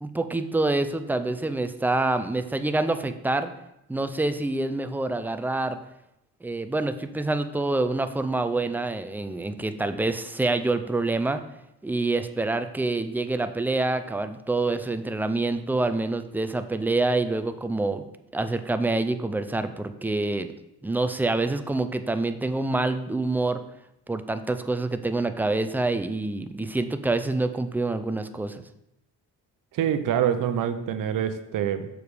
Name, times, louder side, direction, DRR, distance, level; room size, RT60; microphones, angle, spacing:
voice 1, 0.0-3.5 3.9-5.8 6.4-11.4 11.8-18.0 18.3-20.5 20.8-23.6 24.1-28.6, right 2 dB, 5° right, 9 dB, 0.4 m, -26 dB
voice 2, 29.7-31.9, right 9 dB, 65° right, 10 dB, 0.7 m, -25 dB
7.1 x 4.8 x 4.9 m, 0.85 s
cardioid pair, 95°, 35 cm